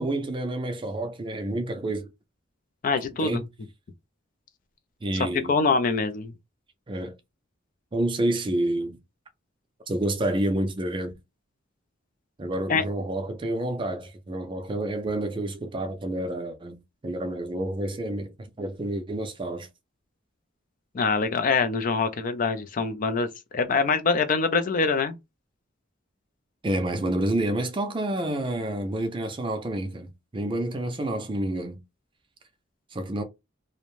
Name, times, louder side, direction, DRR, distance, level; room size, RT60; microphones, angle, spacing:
voice 1, 0.0-2.1 3.2-3.4 5.0-5.5 6.9-7.1 7.9-9.0 9.9-11.1 12.4-19.7 26.6-31.8 32.9-33.2, right 1 dB, 25° right, 0.4 m, -29 dB
voice 2, 2.8-3.4 5.5-6.3 12.7-12.8 20.9-23.3 23.5-25.2, left 4 dB, 45° left, 0.4 m, -24 dB
2.5 x 2.1 x 3.0 m
head